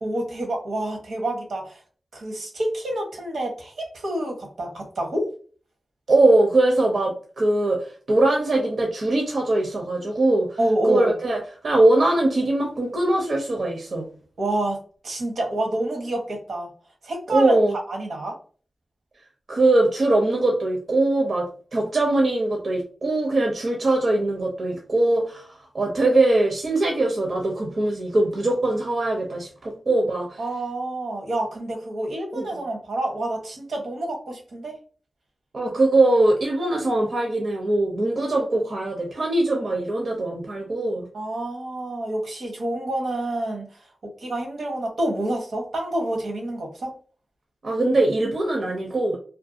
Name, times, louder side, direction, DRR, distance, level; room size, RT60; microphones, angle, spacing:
voice 1, 0.0-1.8 2.1-5.3 10.6-11.1 14.4-14.8 15.0-16.7 17.0-17.6 17.9-18.4 30.4-34.7 41.1-43.9 44.2-46.9, right 1 dB, 85° right, 1 dB, 0.9 m, -28 dB
voice 2, 6.1-10.6 10.8-14.1 17.3-17.7 19.5-30.4 32.3-32.6 35.5-41.1 47.6-49.2, right 2 dB, 65° right, 0 dB, 0.6 m, -21 dB
2.6 x 2.2 x 2.5 m, 0.41 s
cardioid pair, 60°, 0 cm